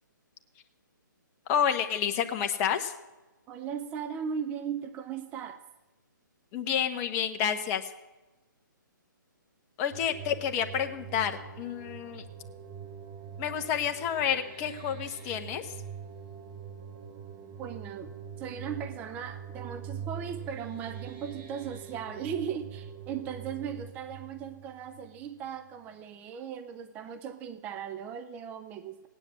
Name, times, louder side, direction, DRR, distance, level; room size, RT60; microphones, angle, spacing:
voice 1, 1.5-2.9 6.5-7.9 9.8-12.2 13.4-15.7, left 8 dB, 25° left, 6 dB, 1.1 m, -29 dB
voice 2, 3.5-5.6 17.6-29.1, right 7 dB, 15° right, 10 dB, 0.5 m, -38 dB
sound 1, 9.9-25.4, right 7 dB, 35° right, 1.9 m, -44 dB
17.0 x 9.9 x 7.5 m, 1.1 s
hypercardioid pair, 150°, 11 cm